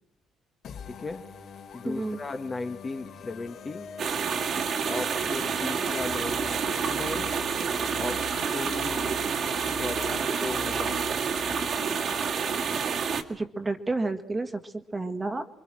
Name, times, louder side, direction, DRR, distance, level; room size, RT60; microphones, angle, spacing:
sound 1, 0.6-13.0, left 6 dB, 55° left, 3.9 m, -44 dB
voice 1, 0.9-1.2 1.7-3.9 4.8-7.3 8.0-9.0 9.8-11.0, left 3 dB, 20° left, 6 dB, 1.4 m, -36 dB
voice 2, 1.8-2.2 13.3-15.5, right 3 dB, 15° right, 7 dB, 1.8 m, -31 dB
sound 2, 4.0-13.2, right 6 dB, 45° right, 2.1 m, -28 dB
28.5 x 24.5 x 6.3 m, 0.74 s
cardioid pair, 170°, 0 cm